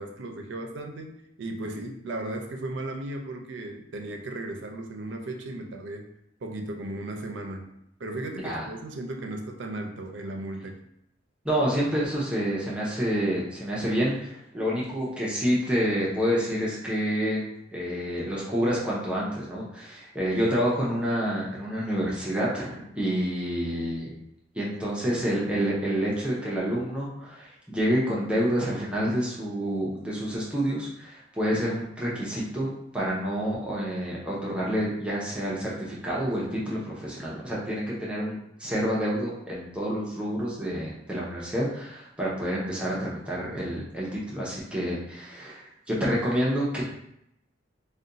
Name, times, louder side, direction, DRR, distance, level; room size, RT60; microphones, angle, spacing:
voice 1, 0.0-6.1 6.4-7.7 8.0-10.8, right 2 dB, 75° right, 4 dB, 0.5 m, -36 dB
voice 2, 11.4-24.1 24.5-32.7 32.9-46.8, equal, 5° right, -6 dB, 0.6 m, -28 dB
2.5 x 2.2 x 3.8 m, 0.78 s
head